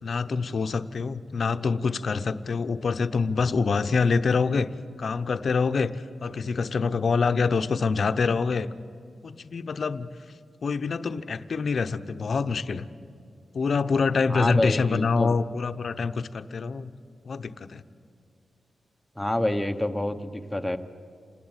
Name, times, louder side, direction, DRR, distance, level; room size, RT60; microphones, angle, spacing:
voice 1, 0.0-4.7 5.0-8.7 9.2-10.1 10.6-12.9 13.5-16.9 17.2-17.8, left 4 dB, 50° left, 11 dB, 0.8 m, -26 dB
voice 2, 14.3-15.4 19.2-20.8, left 1 dB, 5° left, 6 dB, 1.0 m, -27 dB
28.0 x 19.5 x 8.9 m, 2.4 s
wide cardioid pair, 170°, 0 cm